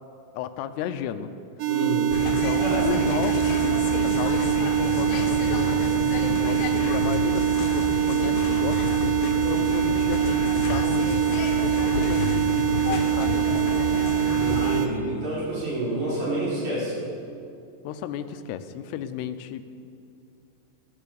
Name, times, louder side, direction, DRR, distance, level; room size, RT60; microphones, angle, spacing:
voice 1, 0.4-1.3 2.4-14.0 17.8-19.6, left 8 dB, 85° left, 10 dB, 2.8 m, -33 dB
sound 1, 1.6-14.9, right 11 dB, 75° right, 2.3 m, -24 dB
voice 2, 1.7-2.1 2.6-2.9 14.4-17.0, right 1 dB, 45° right, -8 dB, 6.4 m, -28 dB
sound 2, 2.1-14.8, left 4 dB, 70° left, 3.0 m, -30 dB
16.5 x 12.5 x 6.9 m, 2.5 s
omnidirectional pair, 4.7 m